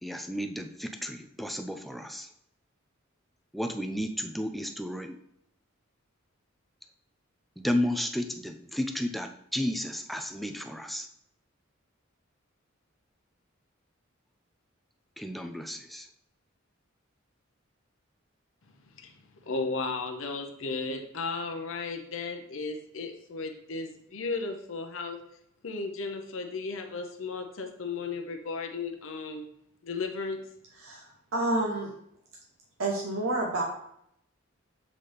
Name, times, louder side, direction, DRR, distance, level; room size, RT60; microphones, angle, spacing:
voice 1, 0.0-2.3 3.5-5.2 7.6-11.1 15.2-16.1, left 1 dB, ahead, 6 dB, 0.4 m, -33 dB
voice 2, 18.9-25.2 25.6-29.5 29.8-30.4, left 4 dB, 75° left, 4 dB, 0.8 m, -35 dB
voice 3, 30.8-31.9 32.8-33.6, right 2 dB, 90° right, -1 dB, 0.9 m, -29 dB
7.4 x 4.0 x 3.3 m, 0.73 s
head